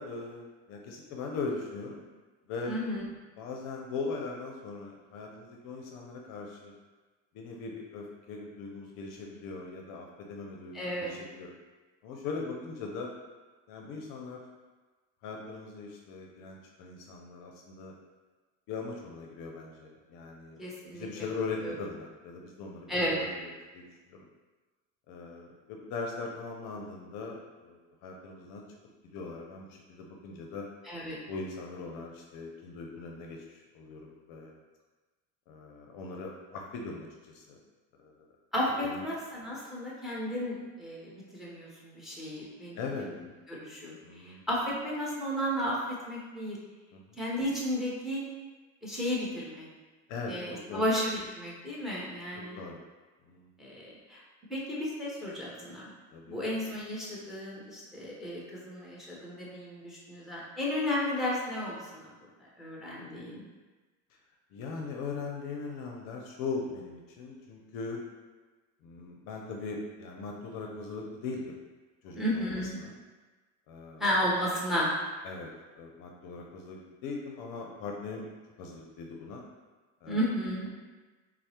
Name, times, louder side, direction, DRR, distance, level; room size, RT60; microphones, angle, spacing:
voice 1, 0.0-2.1 2.5-2.8 3.4-6.7 7.3-11.5 12.0-13.1 13.7-14.4 15.2-17.9 18.7-20.6 20.9-24.2 25.1-28.6 29.1-30.6 31.3-34.5 35.5-37.6 38.0-38.1 38.8-39.0 42.8-43.1 44.0-44.4 46.9-47.2 50.1-50.8 52.3-52.8 53.3-53.5 56.1-56.5 64.5-68.0 68.8-71.6 72.0-72.9 73.7-74.0 75.2-75.5 75.8-78.3 78.6-79.4 80.0-80.2, left 4 dB, 55° left, 0 dB, 0.6 m, -40 dB
voice 2, 2.6-3.0 10.7-11.2 20.6-21.1 21.6-21.8 22.9-23.3 30.8-31.2 38.5-42.8 43.5-46.6 47.2-48.2 48.8-49.7 50.3-52.6 53.6-54.2 54.5-55.9 56.3-62.1 62.6-63.4 72.2-72.8 74.0-74.9 80.1-80.7, equal, ahead, -5 dB, 0.9 m, -33 dB
4.4 x 2.1 x 2.8 m, 1.3 s
supercardioid pair, 100°, 38 cm